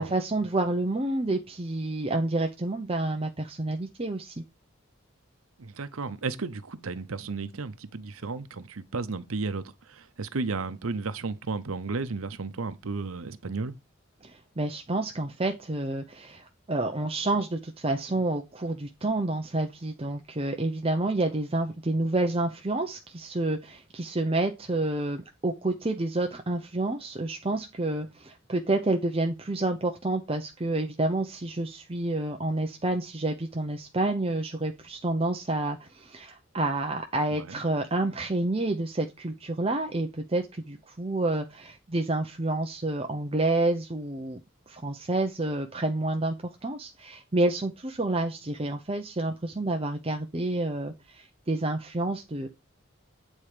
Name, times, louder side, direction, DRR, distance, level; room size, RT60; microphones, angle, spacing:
voice 1, 0.0-4.4 14.2-44.4 44.7-46.3 46.6-52.5, right 2 dB, 25° right, 0.7 m, -29 dB
voice 2, 5.6-13.8 37.3-37.6, right 4 dB, 85° right, 0.8 m, -33 dB
8.9 x 4.3 x 5.0 m
head